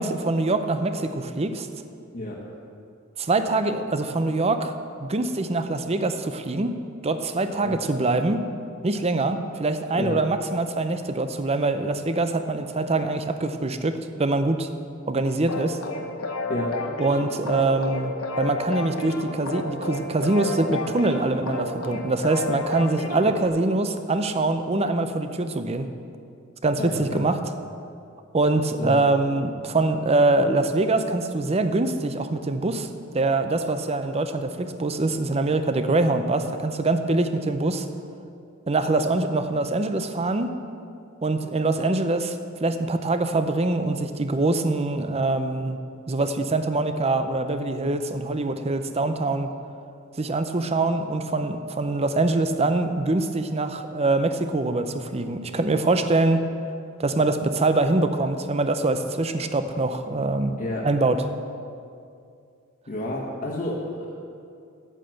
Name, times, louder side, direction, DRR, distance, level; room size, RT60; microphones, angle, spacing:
voice 1, 0.0-1.7 3.2-4.7 5.0-6.7 7.0-8.4 8.8-14.7 15.1-15.8 17.0-25.9 26.6-27.4 28.3-32.9 33.1-37.9 38.7-40.5 41.2-42.4 42.6-45.8 46.1-49.5 50.2-56.4 57.0-60.6 60.8-61.2, right 2 dB, 30° right, 9 dB, 0.6 m, -24 dB
voice 2, 2.1-2.5 7.6-7.8 9.9-10.2 16.5-16.8 26.8-27.2 28.8-29.0 60.6-60.9 62.9-64.1, left 1 dB, 40° left, -5 dB, 1.3 m, -30 dB
sound 1, 15.5-23.5, left 2 dB, 90° left, 1.1 m, -31 dB
9.0 x 8.7 x 7.8 m, 2.4 s
head